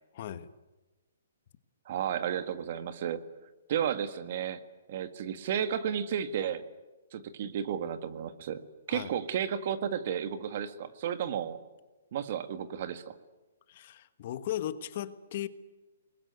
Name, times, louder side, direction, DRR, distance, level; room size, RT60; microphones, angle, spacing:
voice 1, 0.1-0.5 8.9-9.1 13.7-15.5, left 12 dB, 45° left, 12 dB, 1.3 m, -37 dB
voice 2, 1.8-3.2 3.7-4.6 4.9-6.6 7.1-8.6 8.9-11.6 12.1-13.1, right 9 dB, 45° right, 10 dB, 1.7 m, -33 dB
24.5 x 21.0 x 9.6 m, 1.1 s
hypercardioid pair, 160°, 0 cm